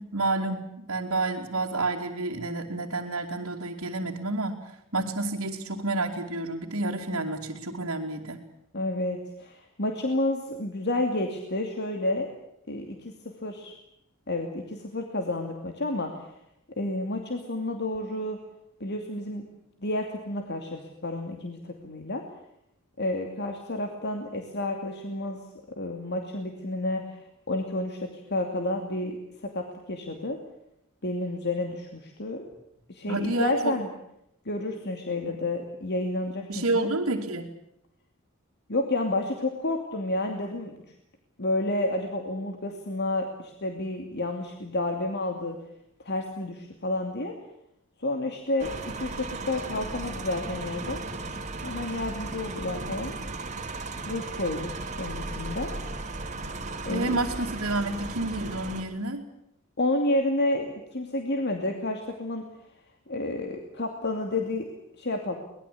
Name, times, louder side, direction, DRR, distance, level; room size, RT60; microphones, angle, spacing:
voice 1, 0.0-4.6 4.9-8.4 33.1-33.7 35.3-35.4 36.5-37.5 56.9-59.2, right 2 dB, 85° right, -3 dB, 2.8 m, -29 dB
voice 2, 8.7-12.3 12.7-13.7 14.3-16.3 16.8-18.4 18.8-19.4 19.8-22.2 23.0-25.4 25.8-30.4 31.0-32.4 32.9-33.9 34.4-36.9 38.7-40.7 41.4-45.6 46.0-47.3 48.0-51.0 51.6-53.1 54.1-55.7 56.8-57.2 59.8-60.7 60.9-62.4 63.1-64.7 65.0-65.4, left 2 dB, 55° left, 4 dB, 2.6 m, -30 dB
sound 1, 48.6-58.8, right 3 dB, 35° right, 2.3 m, -36 dB
24.0 x 20.0 x 8.6 m, 0.78 s
head